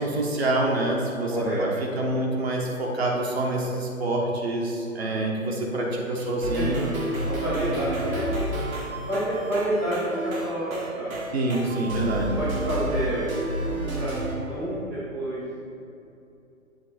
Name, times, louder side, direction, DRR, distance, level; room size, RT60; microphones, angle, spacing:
voice 1, 0.0-1.3 1.6-6.9 11.3-12.3, right 2 dB, 45° right, -1 dB, 1.1 m, -26 dB
voice 2, 1.3-2.1 2.9-3.0 6.4-6.7 7.2-8.8 9.0-11.3 12.4-13.2 14.0-14.1 14.4-15.4, right 1 dB, 5° right, -12 dB, 0.5 m, -29 dB
sound 1, 6.4-14.3, right 1 dB, 75° right, 1.7 m, -30 dB
7.5 x 3.1 x 6.1 m, 2.7 s
figure-of-eight pair, 135°, 42 cm